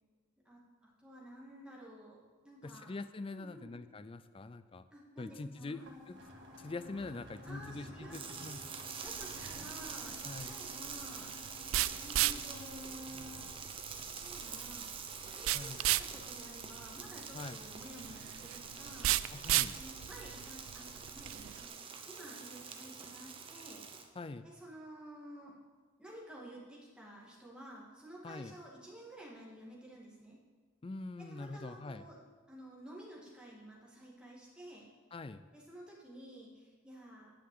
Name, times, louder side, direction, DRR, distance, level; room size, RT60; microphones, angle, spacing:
voice 1, 0.4-2.9 3.3-3.8 4.9-5.8 7.4-8.5 9.0-11.3 12.0-13.4 14.1-15.0 15.2-19.1 19.7-21.8 22.1-23.8 24.4-25.5 26.0-30.4 31.2-32.2 32.5-34.9 35.5-37.3, right 1 dB, 5° right, -5 dB, 2.1 m, -52 dB
voice 2, 2.6-4.9 5.2-6.2 6.6-8.6 10.2-10.6 15.5-15.8 17.3-17.6 19.3-19.8 24.2-24.5 28.2-28.5 30.8-32.0 35.1-35.4, left 3 dB, 25° left, 12 dB, 0.4 m, -44 dB
sound 1, 5.8-13.5, left 2 dB, 60° right, 1.7 m, -53 dB
sound 2, 8.1-24.1, right 6 dB, 25° right, 0.8 m, -46 dB
sound 3, 9.1-21.7, right 15 dB, 85° right, 0.3 m, -36 dB
10.5 x 5.8 x 7.8 m, 1.4 s
head